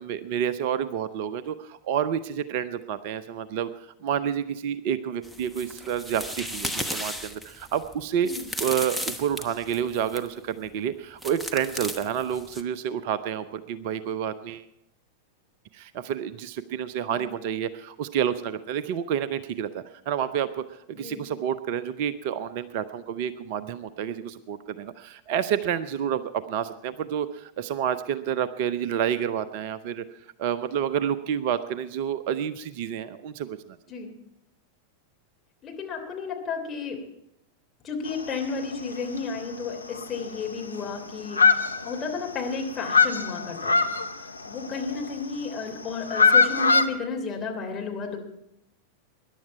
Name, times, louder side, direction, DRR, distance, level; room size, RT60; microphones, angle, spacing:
voice 1, 0.0-3.7 4.0-8.3 8.6-14.6 15.7-30.0 30.4-33.6, right 9 dB, 50° right, 14 dB, 0.6 m, -29 dB
sound 1, 5.2-10.3 11.2-12.6, equal, 5° right, 1.1 m, -35 dB
voice 2, 17.1-17.4 20.9-21.2 33.9-34.1 35.6-37.0 37.8-41.4 41.8-43.9 44.5-48.2, left 4 dB, 25° left, 1 dB, 3.2 m, -32 dB
sound 2, 38.1-38.7 39.1-39.2 39.6-39.7 39.9-40.9 41.2-42.3 42.6-45.1 45.8-46.9, left 4 dB, 80° left, 0.8 m, -22 dB
21.5 x 11.0 x 4.7 m, 0.81 s
figure-of-eight pair, 90°, 0 cm